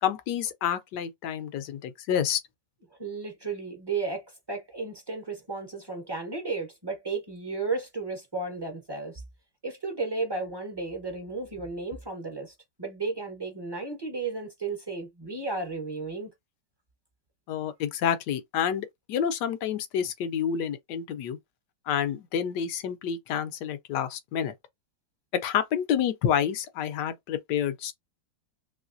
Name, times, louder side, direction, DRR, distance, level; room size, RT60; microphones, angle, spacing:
voice 1, 0.0-2.4 17.5-21.4 21.9-24.5 25.3-27.9, left 8 dB, 75° left, 1.2 m, -28 dB
voice 2, 3.0-9.2 9.6-16.3, right 3 dB, 20° right, 0.8 m, -34 dB
3.2 x 3.1 x 2.5 m
omnidirectional pair, 1.9 m